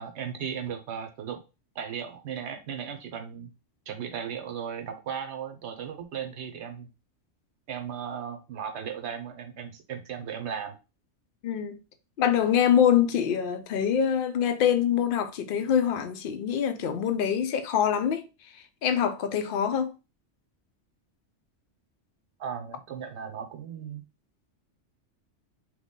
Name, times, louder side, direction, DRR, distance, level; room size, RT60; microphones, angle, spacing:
voice 1, 0.0-1.4 1.7-3.5 3.9-6.9 7.7-10.8 22.4-24.0, right 7 dB, 70° right, 1.0 m, -36 dB
voice 2, 11.4-11.8 12.2-18.2 18.8-19.9, left 8 dB, 60° left, 0.6 m, -24 dB
3.3 x 2.2 x 3.6 m
omnidirectional pair, 1.2 m